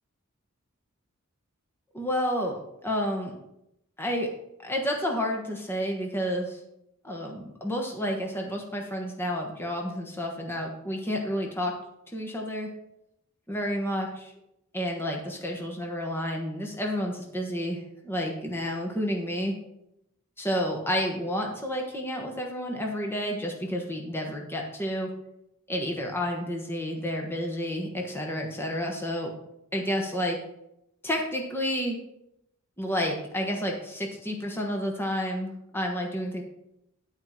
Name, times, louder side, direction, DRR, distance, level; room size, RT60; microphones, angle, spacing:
voice 1, 1.9-3.3 4.0-4.3 4.6-6.6 7.0-11.7 12.1-12.7 13.5-14.3 14.7-19.5 20.4-25.1 25.7-29.3 29.7-30.4 31.0-32.0 32.8-36.4, equal, 10° left, 1 dB, 1.2 m, -30 dB
11.5 x 4.7 x 5.8 m, 0.83 s
head